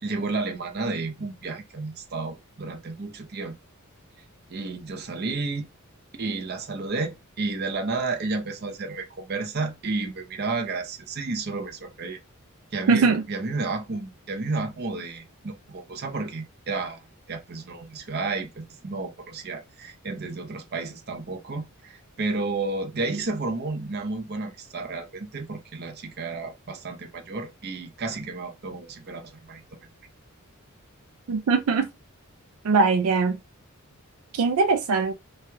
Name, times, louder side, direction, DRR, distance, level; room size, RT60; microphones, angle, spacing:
voice 1, 0.0-3.5 4.5-5.7 6.2-12.2 12.7-29.8, right 3 dB, 50° right, 0.7 m, -32 dB
voice 2, 12.9-13.2 31.3-31.9 32.6-33.4 34.3-35.1, right 4 dB, 85° right, 0.4 m, -21 dB
3.0 x 2.2 x 2.9 m
head